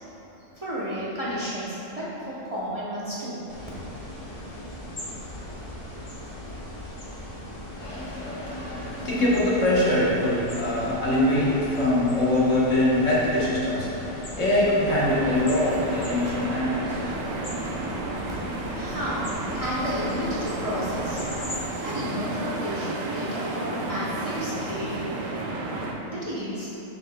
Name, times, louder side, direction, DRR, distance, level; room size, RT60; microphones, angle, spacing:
voice 1, 0.4-3.4 18.7-21.2 21.8-25.1 25.8-26.7, equal, 30° right, -9 dB, 0.9 m, -32 dB
sound 1, 3.5-21.6, left 1 dB, 30° left, 0.8 m, -39 dB
voice 2, 7.8-17.0, left 1 dB, 65° left, -7 dB, 1.5 m, -23 dB
sound 2, 14.9-25.9, right 2 dB, 75° right, 1.1 m, -32 dB
6.9 x 6.2 x 2.2 m, 3.0 s
omnidirectional pair, 1.4 m